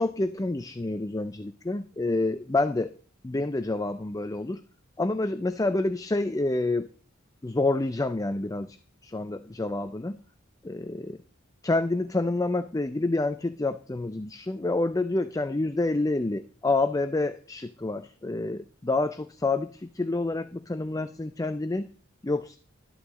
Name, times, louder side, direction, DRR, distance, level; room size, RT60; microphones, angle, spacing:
voice 1, 0.0-2.9 3.2-4.6 5.0-6.9 7.4-8.8 9.0-10.2 10.6-11.2 11.6-21.9 22.2-22.6, left 2 dB, 15° left, 11 dB, 0.5 m, -28 dB
13.5 x 11.0 x 3.8 m, 0.42 s
head